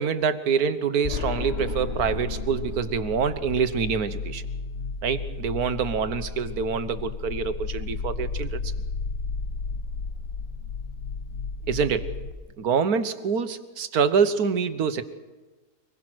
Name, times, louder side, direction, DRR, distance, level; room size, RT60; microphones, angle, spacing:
voice 1, 0.0-4.4 5.0-8.7 11.7-12.1 12.6-15.0, right 6 dB, 80° right, 12 dB, 1.6 m, -26 dB
sound 1, 1.0-12.3, left 4 dB, 50° left, 1.1 m, -33 dB
25.5 x 21.0 x 6.2 m, 1.3 s
omnidirectional pair, 1.6 m